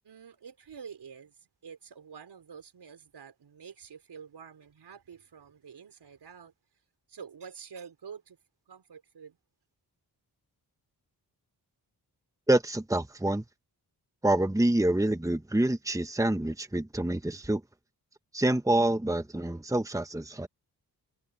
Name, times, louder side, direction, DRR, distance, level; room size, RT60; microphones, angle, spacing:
voice 1, 0.0-6.5 7.1-8.4 8.7-9.4, right 6 dB, 80° right, 4.9 m, -48 dB
voice 2, 12.5-13.4 14.2-17.6 18.3-20.5, right 1 dB, 10° right, 1.4 m, -27 dB
cardioid pair, 55°, 40 cm